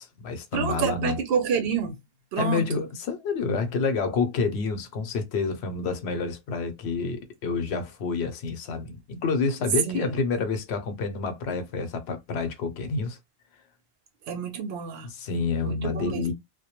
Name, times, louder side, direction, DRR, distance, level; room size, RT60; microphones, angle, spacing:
voice 1, 0.0-1.2 2.4-13.2 15.0-16.3, left 4 dB, 90° left, 0.9 m, -28 dB
voice 2, 0.5-2.0 2.3-2.7 9.9-10.1 14.3-15.1 15.6-16.3, right 7 dB, 75° right, 0.8 m, -28 dB
2.2 x 2.1 x 2.8 m
omnidirectional pair, 1.0 m